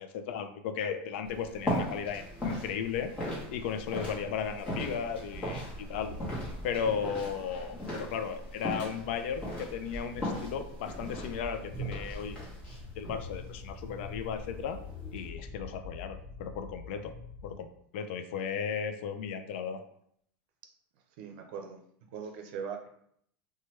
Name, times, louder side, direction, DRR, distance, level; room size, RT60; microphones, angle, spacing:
voice 1, 0.0-3.1 3.5-6.1 6.6-12.4 13.0-14.8 15.1-17.1 17.4-17.7 17.9-19.8, left 7 dB, 75° left, 8 dB, 0.3 m, -35 dB
sound 1, 1.3-15.3, equal, 20° left, 1.1 m, -38 dB
sound 2, 10.5-17.6, left 5 dB, 20° right, 1.3 m, -46 dB
voice 2, 21.2-21.8 22.1-22.9, right 6 dB, 65° right, 3 dB, 0.6 m, -40 dB
2.9 x 2.2 x 3.1 m, 0.68 s
supercardioid pair, 145°, 6 cm